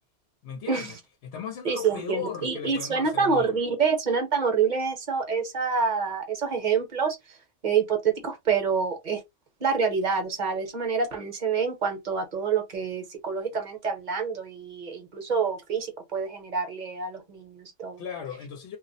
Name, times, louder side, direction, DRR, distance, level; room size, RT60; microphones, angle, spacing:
voice 1, 0.4-0.9 1.2-3.6 18.0-18.8, left 7 dB, 80° left, 0.9 m, -37 dB
voice 2, 1.6-7.2 7.6-9.2 9.6-18.0, right 5 dB, 45° right, 0.9 m, -27 dB
2.3 x 2.0 x 3.8 m
omnidirectional pair, 1.2 m